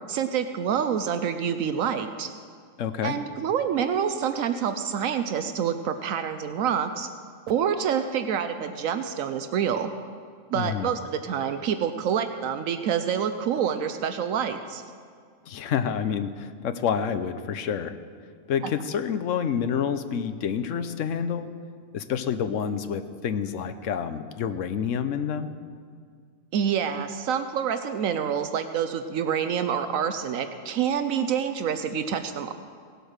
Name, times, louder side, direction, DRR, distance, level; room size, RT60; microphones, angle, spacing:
voice 1, 0.1-2.3 3.0-7.1 7.5-9.9 10.5-14.8 26.5-32.5, right 8 dB, 80° right, 9 dB, 1.0 m, -27 dB
voice 2, 2.8-3.2 10.5-10.9 15.4-18.0 18.5-21.5 21.9-25.5, left 7 dB, 70° left, 10 dB, 1.1 m, -28 dB
17.5 x 8.0 x 6.5 m, 2.1 s
omnidirectional pair, 1.4 m